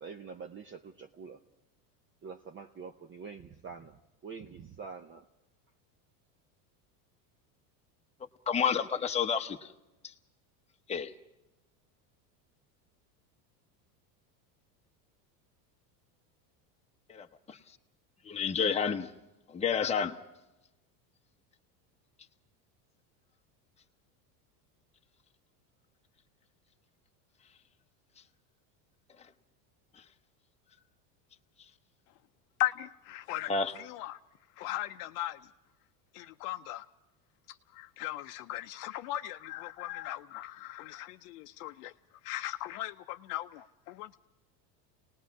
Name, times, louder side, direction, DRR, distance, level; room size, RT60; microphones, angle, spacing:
voice 1, 0.0-1.4 2.2-5.3, right 5 dB, 25° right, 6 dB, 0.7 m, -46 dB
voice 2, 8.5-9.7 10.0-10.1 10.9-11.1 17.1-17.8 18.2-19.1 19.5-20.2 30.0-30.1 33.5-33.7, left 6 dB, 15° left, 4 dB, 0.9 m, -30 dB
voice 3, 32.6-33.5 33.8-34.2 34.6-35.4 36.1-36.8 37.5-41.9 42.2-44.1, left 15 dB, 80° left, 5 dB, 0.7 m, -38 dB
29.0 x 19.5 x 4.7 m, 0.99 s
supercardioid pair, 120°, 46 cm